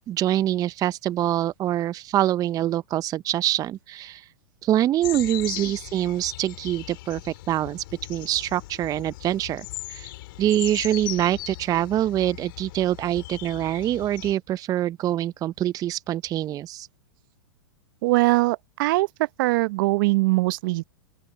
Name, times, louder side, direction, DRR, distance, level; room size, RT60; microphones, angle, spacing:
voice 1, 0.0-4.3 4.6-7.8 8.1-10.1 10.4-16.9, right 12 dB, 25° right, 0.7 m, -25 dB
sound 1, 5.0-14.3, left 18 dB, 55° left, 4.5 m, -38 dB
voice 2, 18.0-19.1 19.4-20.8, right 22 dB, 55° right, 1.0 m, -21 dB
open air
hypercardioid pair, 110°, 13 cm